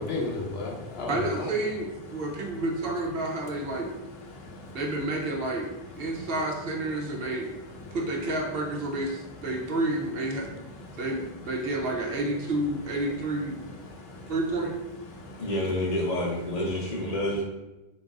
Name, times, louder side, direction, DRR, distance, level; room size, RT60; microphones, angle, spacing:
voice 1, 0.0-1.5 2.1-2.6 3.5-3.9 4.2-4.8 5.6-6.3 7.0-8.0 9.1-9.8 10.3-11.3 13.1-14.3 15.1-15.7 16.6-17.4, left 2 dB, 75° left, 0 dB, 1.0 m, -39 dB
voice 2, 1.1-3.9 4.7-5.7 6.0-10.7 11.0-13.6 14.3-14.7, right 2 dB, 70° right, 0 dB, 1.0 m, -30 dB
voice 3, 15.4-17.4, left 1 dB, 45° left, -4 dB, 0.6 m, -28 dB
4.0 x 3.9 x 2.5 m, 1.0 s
omnidirectional pair, 1.0 m